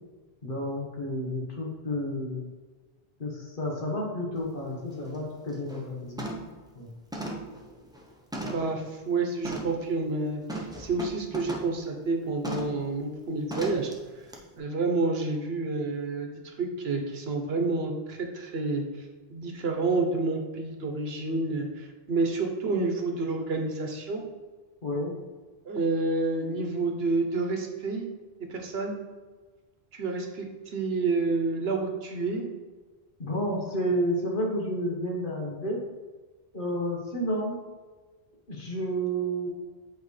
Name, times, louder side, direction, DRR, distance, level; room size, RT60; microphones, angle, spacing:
voice 1, 0.4-2.5 3.2-6.2 6.8-6.9 24.8-25.2 33.2-35.8 36.5-37.6 38.5-39.5, equal, 55° left, -2 dB, 1.5 m, -30 dB
sound 1, 4.4-4.5 4.9-5.2 5.5-5.8 6.2-6.6 7.1-8.8 9.4-9.8 10.5-11.8 12.4-12.8 13.5-13.9 14.3-14.4, right 1 dB, 5° right, 0.7 m, -37 dB
voice 2, 8.4-13.9 14.6-18.8 19.3-24.2 25.6-28.0 28.5-28.9 29.9-32.4, right 3 dB, 75° right, 3 dB, 1.1 m, -29 dB
7.8 x 4.6 x 3.2 m, 1.3 s
omnidirectional pair, 1.1 m